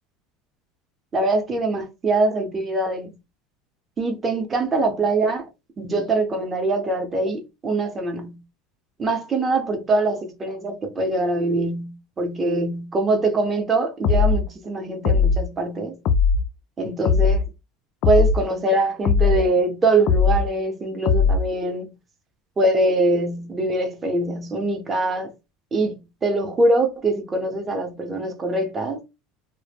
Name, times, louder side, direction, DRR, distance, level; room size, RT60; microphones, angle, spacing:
voice 1, 1.1-3.2 4.0-5.5 5.8-8.4 9.0-16.0 16.8-17.5 18.1-21.9 22.6-25.3 25.7-29.0, right 2 dB, 20° right, 0.7 m, -23 dB
sound 1, 14.0-14.4 15.0-15.4 16.0-16.4 17.0-17.4 18.0-18.4 19.0-19.4 20.1-20.5 21.1-21.5, left 5 dB, 50° left, 0.3 m, -18 dB
2.1 x 2.0 x 3.3 m
supercardioid pair, 135°, 0 cm